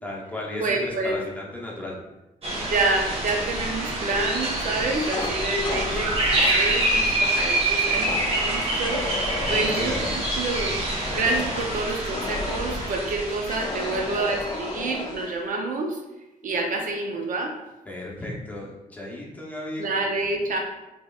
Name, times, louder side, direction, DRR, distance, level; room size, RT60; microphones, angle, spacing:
voice 1, 0.0-2.0 9.5-10.1 17.8-19.9, left 1 dB, 10° left, -4 dB, 0.8 m, -35 dB
voice 2, 0.6-1.2 2.6-9.0 9.5-10.8 11.1-15.9 16.4-17.5 19.8-20.6, right 3 dB, 60° right, 2 dB, 0.6 m, -27 dB
sound 1, 2.4-15.0, right 1 dB, 40° right, 1.0 m, -26 dB
Fire, 5.1-6.7 8.0-8.5 8.8-12.9 13.5-15.3, left 3 dB, 30° left, 0.3 m, -34 dB
6.1 x 3.0 x 2.3 m, 0.99 s
wide cardioid pair, 170°, 15 cm